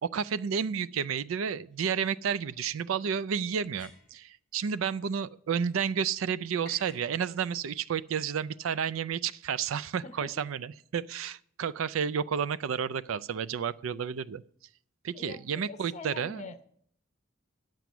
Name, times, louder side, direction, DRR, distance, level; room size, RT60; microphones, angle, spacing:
voice 1, 0.0-14.4 15.0-16.5, right 7 dB, 80° right, 17 dB, 0.4 m, -31 dB
sound 1, 1.7-1.8 3.6-4.3 6.6-7.1, left 3 dB, 5° left, 2.2 m, -53 dB
voice 2, 10.0-10.4 15.1-16.7, left 4 dB, 35° left, 10 dB, 0.8 m, -44 dB
9.1 x 7.6 x 7.0 m, 0.63 s
head